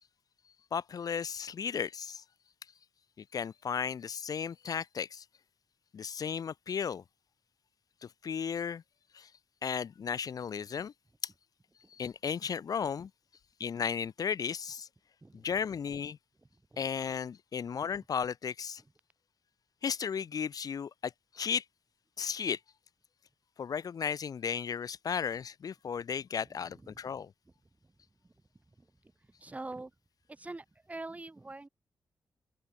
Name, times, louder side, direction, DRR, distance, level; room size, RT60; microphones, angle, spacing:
voice 1, 0.7-2.2 3.3-5.3 5.9-7.0 8.0-8.8 9.1-9.3 9.6-10.9 11.2-11.3 11.9-13.1 13.6-14.9 15.3-16.2 16.8-18.8 19.8-21.6 22.2-22.6 23.6-27.3, left 7 dB, 65° left, 3.4 m, -35 dB
voice 2, 26.7-27.1 27.8-27.9 28.2-28.3 28.8-28.9 29.2-29.9 30.3-31.7, right 2 dB, 20° right, 7.8 m, -44 dB
open air
wide cardioid pair, 105°, 7 cm